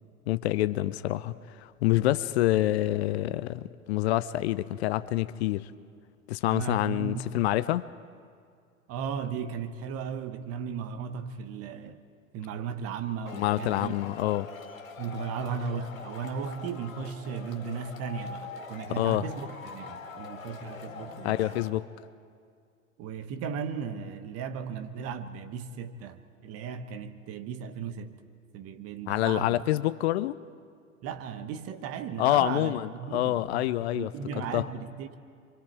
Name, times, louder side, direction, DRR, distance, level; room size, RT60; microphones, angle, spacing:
voice 1, 0.3-5.7 6.3-7.8 13.3-14.5 19.0-19.2 21.2-21.9 29.1-30.4 32.2-34.1 34.5-34.7, left 15 dB, 50° left, 0.6 m, -27 dB
voice 2, 6.5-7.2 8.9-12.0 12.3-13.9 15.0-21.6 23.0-28.1 28.5-29.6 31.0-33.7 33.9-35.2, right 6 dB, 35° right, 1.3 m, -36 dB
Male speech man speaking / Shout / Clapping, 13.3-21.7, left 5 dB, 75° left, 2.3 m, -43 dB
28.0 x 24.5 x 4.6 m
figure-of-eight pair, 90°, 41 cm